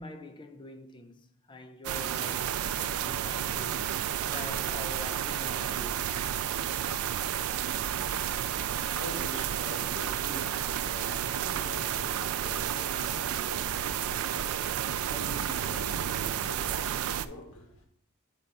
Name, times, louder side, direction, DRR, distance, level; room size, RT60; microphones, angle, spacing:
voice 1, 0.0-6.3, left 2 dB, 20° left, 0.5 m, -45 dB
sound 1, 1.8-17.3, right 10 dB, 85° right, 0.3 m, -31 dB
voice 2, 8.2-17.8, left 1 dB, 75° left, 2.0 m, -45 dB
8.2 x 3.4 x 5.2 m
head